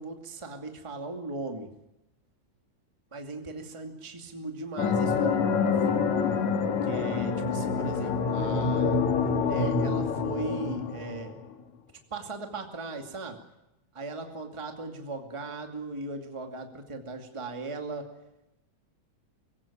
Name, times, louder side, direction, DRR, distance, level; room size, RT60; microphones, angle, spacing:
voice 1, 0.0-1.7 3.1-6.1 6.8-9.0 9.3-11.3 12.1-13.4 13.9-18.1, right 3 dB, 10° right, 5 dB, 1.9 m, -38 dB
sound 1, 4.8-11.5, left 5 dB, 60° left, 3.1 m, -27 dB
24.5 x 16.0 x 8.6 m, 0.91 s
omnidirectional pair, 3.8 m